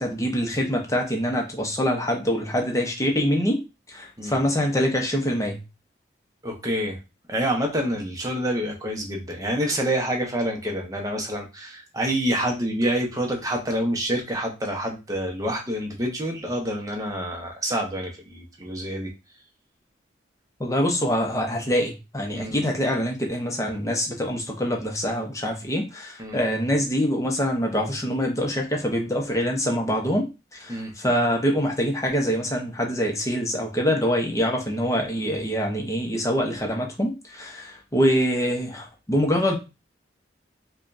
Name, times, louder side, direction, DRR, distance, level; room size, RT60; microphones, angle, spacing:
voice 1, 0.0-3.6 3.9-5.6 20.6-39.6, equal, 15° left, 1 dB, 0.8 m, -25 dB
voice 2, 6.4-7.0 7.3-19.1 22.3-22.6 26.2-26.4 30.7-30.9, equal, 20° right, 1 dB, 0.9 m, -27 dB
5.0 x 2.4 x 2.6 m, 0.26 s
head